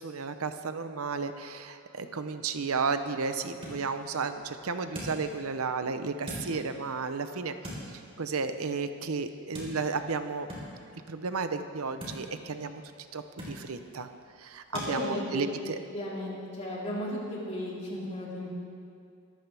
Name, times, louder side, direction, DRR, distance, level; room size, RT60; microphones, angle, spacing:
voice 1, 0.0-7.5 7.9-10.5 11.1-12.8 13.1-14.1 14.4-15.8, right 4 dB, 80° right, 9 dB, 0.8 m, -33 dB
sound 1, 3.3-14.9, equal, 25° right, 4.0 m, -46 dB
voice 2, 14.9-15.4 15.9-18.5, left 1 dB, 30° left, -7 dB, 3.9 m, -35 dB
23.0 x 14.0 x 3.5 m, 2.4 s
head